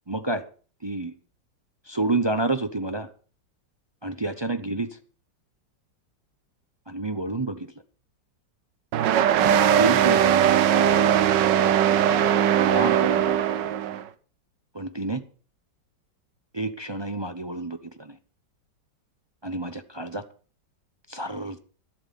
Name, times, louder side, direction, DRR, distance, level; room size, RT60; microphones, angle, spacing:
voice 1, 0.1-0.4 0.8-1.1 1.9-3.1 4.0-4.9 6.9-7.7 9.7-10.6 12.6-13.7 14.7-15.2 16.5-18.1 19.4-20.2 21.1-21.6, right 2 dB, 45° right, 9 dB, 0.3 m, -29 dB
sound 1, 8.9-14.0, right 9 dB, 75° right, 1.5 m, -20 dB
13.0 x 12.0 x 5.3 m, 0.41 s
omnidirectional pair, 2.0 m